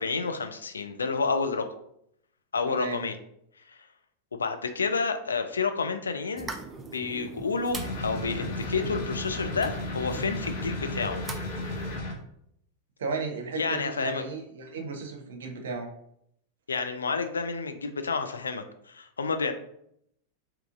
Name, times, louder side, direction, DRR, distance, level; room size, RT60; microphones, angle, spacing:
voice 1, 0.0-1.7 2.5-3.2 3.7-3.8 4.3-6.5 6.8-11.2 13.6-14.2 16.7-19.5, left 4 dB, 75° left, 7 dB, 0.3 m, -30 dB
voice 2, 2.7-3.0 13.0-15.9, right 4 dB, 65° right, 3 dB, 0.6 m, -34 dB
sound 1, 6.4-12.0, right 3 dB, 15° right, 0.4 m, -41 dB
sound 2, 7.7-12.1, left 2 dB, 55° left, 0.8 m, -34 dB
3.6 x 2.9 x 2.4 m, 0.72 s
figure-of-eight pair, 90°, 0 cm